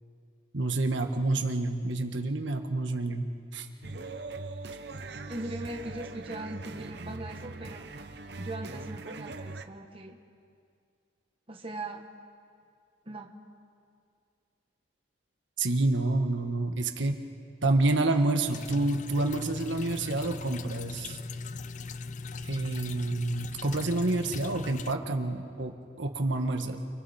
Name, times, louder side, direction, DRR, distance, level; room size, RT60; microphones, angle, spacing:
voice 1, 0.5-3.2 3.5-3.7 15.6-17.2 17.6-21.2 22.4-26.8, right 2 dB, 75° right, 5 dB, 1.4 m, -28 dB
sound 1, 3.8-9.6, right 3 dB, 60° right, 0.9 m, -41 dB
voice 2, 5.3-7.9 8.4-10.2 11.5-12.1 13.0-13.3, right 1 dB, 30° right, 2 dB, 1.3 m, -40 dB
sound 2, 18.4-24.9, left 4 dB, 40° left, 0.4 m, -39 dB
30.0 x 23.0 x 4.4 m, 2.3 s
head